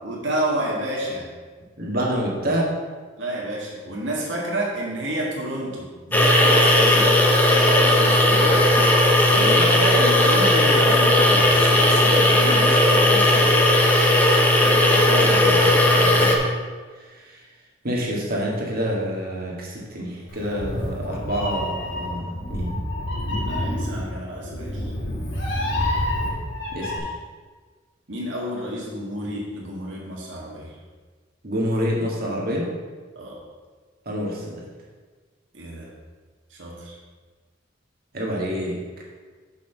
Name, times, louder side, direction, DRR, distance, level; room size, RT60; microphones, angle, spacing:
voice 1, 0.0-1.3 3.2-7.2 7.5-8.6 9.3-13.5 14.9-15.4 23.5-24.9 28.1-30.8 33.1-33.4 35.5-35.9 36.5-37.0, right 1 dB, 75° right, -4 dB, 1.8 m, -30 dB
voice 2, 1.8-2.7 9.3-9.7 15.2-16.4 16.9-17.4 17.8-22.8 26.7-27.1 31.4-32.7 34.1-34.7 38.1-38.8, equal, 55° right, -2 dB, 2.0 m, -27 dB
sound 1, 6.1-16.4, left 1 dB, 10° left, 1.0 m, -17 dB
Meow, 20.3-27.0, left 1 dB, 75° left, 2.2 m, -28 dB
6.7 x 6.0 x 5.8 m, 1.4 s
head